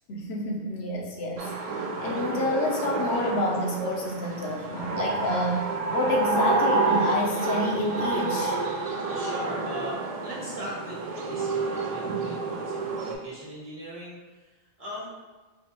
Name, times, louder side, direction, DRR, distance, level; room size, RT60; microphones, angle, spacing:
voice 1, 0.1-1.5 2.0-8.6, left 1 dB, 80° left, -1 dB, 0.9 m, -28 dB
sound 1, 1.4-13.1, right 3 dB, 55° right, 0.4 m, -29 dB
voice 2, 8.9-11.0 11.3-14.5 14.8-15.1, equal, 35° right, -8 dB, 1.2 m, -39 dB
4.5 x 2.2 x 2.9 m, 1.2 s
omnidirectional pair, 1.1 m